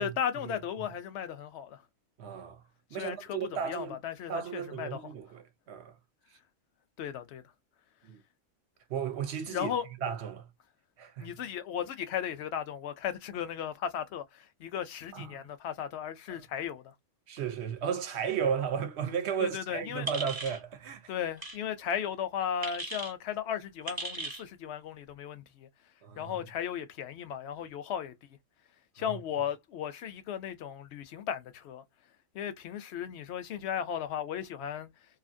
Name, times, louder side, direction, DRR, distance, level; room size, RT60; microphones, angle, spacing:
voice 1, 0.0-1.8 3.0-5.0 7.0-7.4 9.5-9.8 11.2-16.9 19.4-20.1 21.1-25.7 26.2-28.1 29.0-31.8 32.3-34.9, left 8 dB, 65° left, 0.7 m, -36 dB
voice 2, 2.2-2.6 2.9-4.0 4.3-5.9 8.0-8.2 8.9-9.7 10.0-10.5 11.0-11.3 15.1-15.4 17.3-21.1 26.0-26.4 29.1-29.2, right 7 dB, 60° right, 0.9 m, -34 dB
sound 1, 20.1-20.6 21.4-21.6 22.6-23.1 23.9-24.4, right 2 dB, 30° right, 0.4 m, -37 dB
2.7 x 2.4 x 2.5 m
omnidirectional pair, 1.4 m